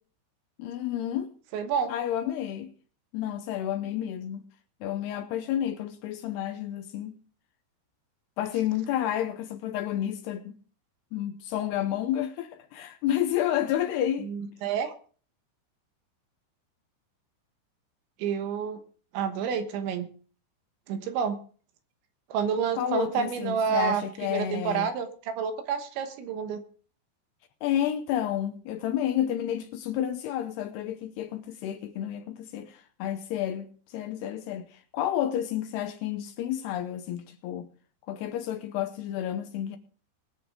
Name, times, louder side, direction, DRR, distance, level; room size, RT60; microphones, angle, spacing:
voice 1, 0.6-1.3 1.9-2.7 3.1-4.4 4.8-7.2 8.4-10.6 11.1-14.3 22.7-24.9 27.6-37.7 38.1-39.8, left 11 dB, 80° left, 2.5 m, -30 dB
voice 2, 1.5-1.9 14.2-14.9 18.2-18.8 19.1-20.1 20.9-21.4 22.3-24.0 24.3-26.6, right 7 dB, 80° right, 3.6 m, -29 dB
21.5 x 8.4 x 3.5 m
omnidirectional pair, 5.3 m